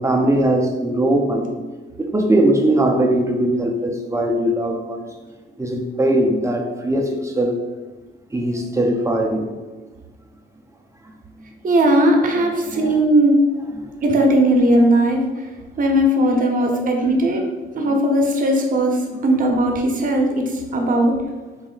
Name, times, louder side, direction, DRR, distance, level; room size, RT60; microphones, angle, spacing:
voice 1, 0.0-1.6 2.0-5.1 5.6-7.6 8.3-9.5 12.8-12.9 16.6-16.9, right 1 dB, 15° right, 0.5 m, -20 dB
voice 2, 11.6-13.4 14.0-15.5 15.8-17.4 17.7-21.1, right 1 dB, 45° right, 0.8 m, -18 dB
4.0 x 2.1 x 3.8 m
cardioid pair, 90°, 20 cm